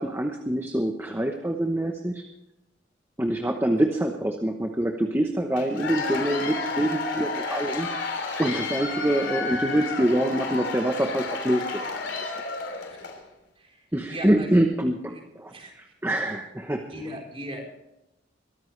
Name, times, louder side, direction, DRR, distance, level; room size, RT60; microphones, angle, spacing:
voice 1, 0.0-2.2 3.2-7.9 8.4-11.6 11.9-12.2 13.9-16.8, right 1 dB, 10° right, 3 dB, 1.0 m, -25 dB
Cheering / Applause / Crowd, 5.6-13.2, left 3 dB, 75° left, 3.3 m, -31 dB
voice 2, 13.6-14.5 15.1-15.2 15.5-16.2 16.9-17.6, equal, 30° right, 0 dB, 4.1 m, -39 dB
22.5 x 14.5 x 3.3 m, 0.90 s
head